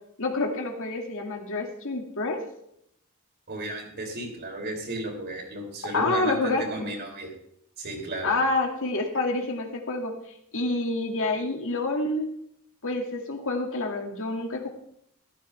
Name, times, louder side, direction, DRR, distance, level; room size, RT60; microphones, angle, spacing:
voice 1, 0.2-2.4 5.9-6.9 8.2-10.2 10.5-12.3 12.8-14.7, left 2 dB, 65° left, 2 dB, 2.2 m, -28 dB
voice 2, 3.5-7.3 7.8-8.3, right 1 dB, 50° right, 1 dB, 3.7 m, -34 dB
14.5 x 13.5 x 3.4 m, 0.72 s
head